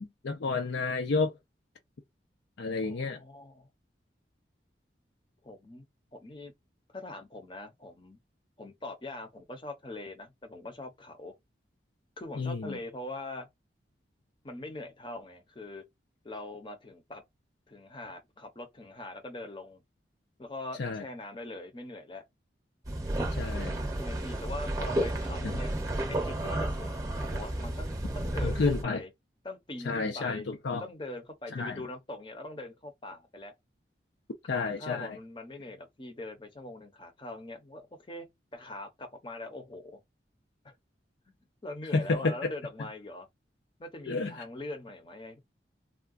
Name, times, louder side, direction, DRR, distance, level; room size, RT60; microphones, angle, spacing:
voice 1, 0.0-1.4 2.6-3.2 12.4-12.8 20.8-21.0 23.4-23.8 25.4-25.5 28.4-29.0 29.8-30.8 31.5-31.8 34.5-35.2 41.9-42.5 44.1-44.4, left 3 dB, 85° left, 0.5 m, -30 dB
voice 2, 2.8-3.7 5.4-5.8 6.1-6.5 6.9-8.2 8.6-11.3 12.2-13.5 14.4-15.9 16.2-17.2 17.7-19.8 20.4-22.2 24.0-25.7 26.1-29.1 29.4-30.4 30.8-33.5 34.5-40.0 40.6-40.7 41.6-43.3 43.8-45.4, left 2 dB, 25° left, 0.7 m, -42 dB
sound 1, 22.8-28.8, right 1 dB, 20° right, 0.7 m, -32 dB
3.6 x 2.2 x 2.4 m
head